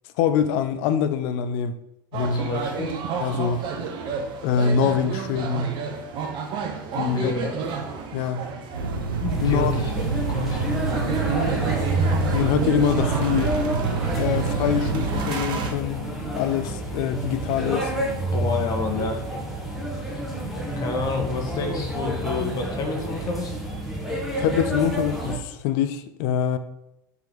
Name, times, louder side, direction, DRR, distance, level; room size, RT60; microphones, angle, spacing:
voice 1, 0.2-1.7 2.1-2.5 3.2-3.6 4.4-5.7 7.0-7.4 8.1-8.5 9.4-9.7 12.3-13.6 14.2-17.9 24.4-26.6, left 8 dB, 55° left, 11 dB, 0.6 m, -24 dB
sound 1, 2.1-15.7, right 6 dB, 45° right, 1.0 m, -31 dB
voice 2, 2.3-2.9 7.0-7.5 9.2-10.7 18.3-19.3 20.8-23.6, left 4 dB, 35° left, 2 dB, 1.4 m, -29 dB
sound 2, 8.7-15.2, right 5 dB, 85° right, 0.8 m, -27 dB
sound 3, 9.3-25.4, right 1 dB, ahead, 1.6 m, -29 dB
5.8 x 3.8 x 5.0 m, 0.88 s
hypercardioid pair, 85°, 11 cm